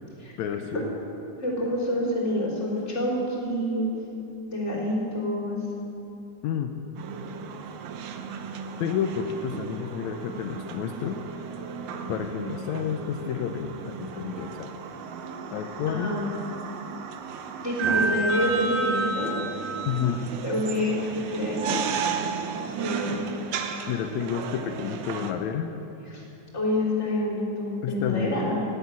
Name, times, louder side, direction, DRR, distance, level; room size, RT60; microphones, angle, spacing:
voice 1, 0.4-1.0 6.4-6.8 8.8-11.5 12.1-14.7 15.5-16.1 19.8-20.2 23.9-25.7 27.8-28.5, left 8 dB, 85° left, 5 dB, 1.6 m, -30 dB
voice 2, 1.4-3.9 4.5-5.6 15.9-16.3 17.6-19.4 20.4-21.8 22.8-23.2 26.1-26.2 26.5-28.6, left 1 dB, 20° left, -4 dB, 3.5 m, -27 dB
sound 1, 7.0-25.3, right 4 dB, 80° right, 1.5 m, -33 dB
17.0 x 8.3 x 9.6 m, 2.8 s
omnidirectional pair, 4.2 m